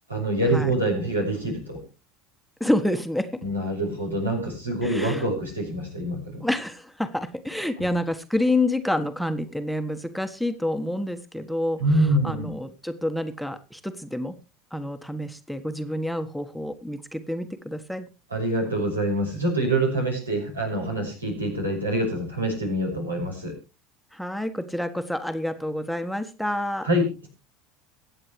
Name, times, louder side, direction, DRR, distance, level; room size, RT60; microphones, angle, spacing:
voice 1, 0.1-1.8 3.4-6.4 11.8-12.5 18.3-23.5 26.8-27.0, right 1 dB, 90° right, 0 dB, 5.9 m, -25 dB
voice 2, 2.6-3.4 4.8-5.2 6.4-14.3 14.7-18.1 24.1-26.9, left 1 dB, ahead, 7 dB, 1.3 m, -28 dB
23.0 x 8.8 x 3.2 m, 0.30 s
figure-of-eight pair, 75°, 0 cm